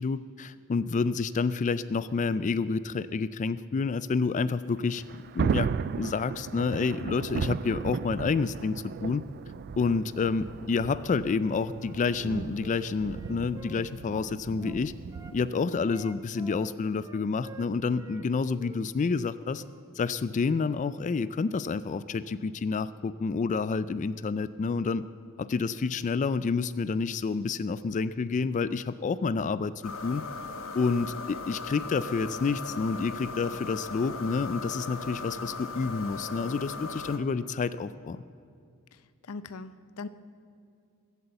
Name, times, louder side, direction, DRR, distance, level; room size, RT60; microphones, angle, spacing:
voice 1, 0.0-5.0 5.3-5.7 6.0-9.2 9.7-14.9 15.3-19.6 20.0-25.0 25.4-30.2 30.7-38.2, left 4 dB, 35° left, 15 dB, 0.3 m, -29 dB
Thunder, 4.8-15.5, right 6 dB, 45° right, 0.3 m, -35 dB
Wind instrument woodwind instrument, 11.7-15.4 15.8-18.3 18.5-19.9, right 2 dB, 15° right, 0.7 m, -50 dB
sound 1, 29.8-37.2, left 4 dB, 65° left, 1.2 m, -38 dB
voice 2, 38.9-40.1, left 4 dB, 90° left, 13 dB, 0.7 m, -41 dB
22.0 x 8.1 x 7.8 m, 2.4 s
head